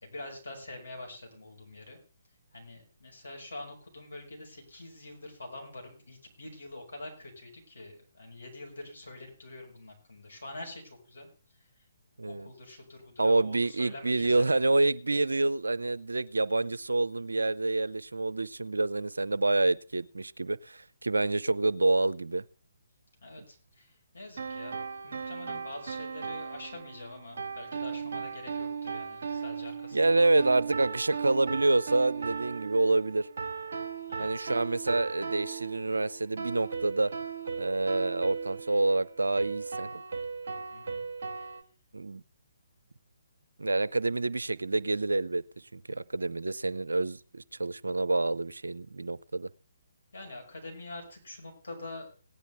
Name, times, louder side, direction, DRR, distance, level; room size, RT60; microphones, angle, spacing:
voice 1, 0.0-2.0 2.5-10.8 11.1-11.3 12.3-14.6 23.2-23.9 24.1-30.5 34.1-34.4 40.7-41.0 41.3-41.5 50.1-52.1, left 2 dB, 70° left, 5.6 m, -45 dB
voice 2, 12.2-12.5 13.2-22.4 29.9-33.3 34.2-37.1 37.6-40.0 41.9-42.2 43.6-45.4 45.7-49.5, right 2 dB, 75° right, 0.5 m, -27 dB
sound 1, 24.4-41.6, right 5 dB, 55° right, 0.9 m, -37 dB
18.0 x 10.0 x 3.4 m
figure-of-eight pair, 135°, 0 cm